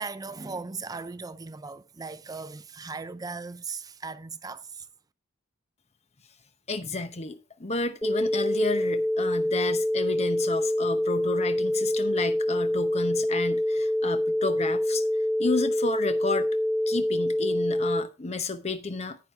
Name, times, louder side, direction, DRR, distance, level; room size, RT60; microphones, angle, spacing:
voice 1, 0.0-4.9, right 4 dB, 20° right, 0.5 m, -38 dB
voice 2, 6.7-15.0 15.4-16.5 16.9-19.2, left 3 dB, 35° left, 0.9 m, -31 dB
sound 1, 8.0-18.0, left 1 dB, 10° left, 0.9 m, -26 dB
10.0 x 9.5 x 3.6 m
head